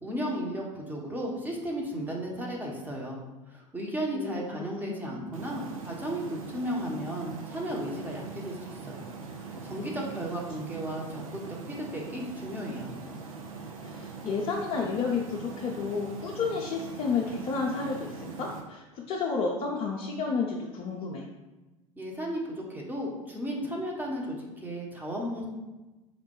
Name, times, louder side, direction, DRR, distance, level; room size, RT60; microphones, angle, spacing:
voice 1, 0.0-3.2 3.5-9.1 9.4-11.4 11.7-12.9 22.0-25.5, equal, 10° right, -2 dB, 0.9 m, -34 dB
voice 2, 4.1-5.3 9.8-9.9 10.5-10.7 13.8-21.3, left 5 dB, 35° left, -1 dB, 0.5 m, -31 dB
sound 1, 5.3-18.6, right 5 dB, 75° right, 0.6 m, -42 dB
4.2 x 2.2 x 4.4 m, 1.1 s
figure-of-eight pair, 75°, 18 cm